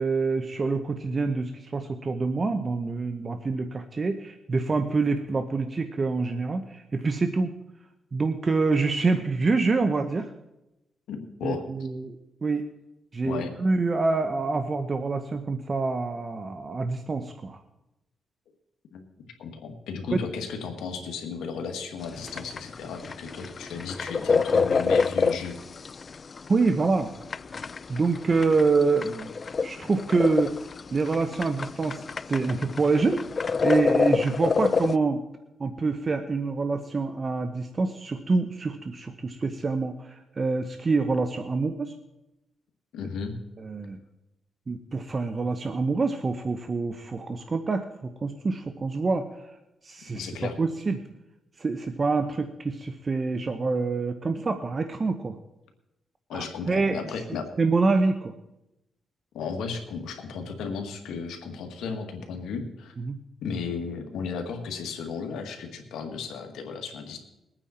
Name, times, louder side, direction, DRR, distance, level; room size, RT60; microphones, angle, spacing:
voice 1, 0.0-7.5 8.1-10.3 11.4-12.2 12.4-12.6 13.1-17.6 26.5-27.1 27.9-29.3 29.6-30.6 30.9-33.2 33.6-35.2 35.6-41.9 43.7-44.0 44.7-49.3 49.8-50.3 50.6-51.0 51.6-55.3 56.3-57.0 57.6-58.3 63.1-63.2, right 3 dB, 40° right, 8 dB, 1.0 m, -26 dB
voice 2, 11.1-11.6 13.2-13.5 18.9-19.0 19.4-25.6 42.9-43.3 50.1-50.6 56.3-57.5 59.3-62.9 63.4-67.2, left 5 dB, 90° left, 5 dB, 1.8 m, -34 dB
sound 1, 22.0-35.0, left 5 dB, 45° left, 0.4 m, -27 dB
21.5 x 9.0 x 4.4 m, 0.93 s
cardioid pair, 75°, 0 cm